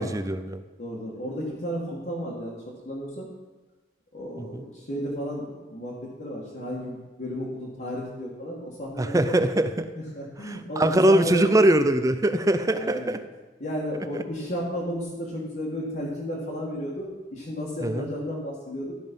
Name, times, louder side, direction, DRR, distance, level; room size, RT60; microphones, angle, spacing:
voice 1, 0.0-0.6 4.4-4.6 9.0-9.9 10.5-13.2 14.1-14.2 17.8-18.1, right 1 dB, 20° right, 10 dB, 0.4 m, -22 dB
voice 2, 0.8-3.3 4.1-9.4 9.9-11.5 12.7-13.2 13.6-18.9, equal, 50° left, -6 dB, 1.7 m, -33 dB
12.5 x 5.4 x 5.3 m, 1.2 s
head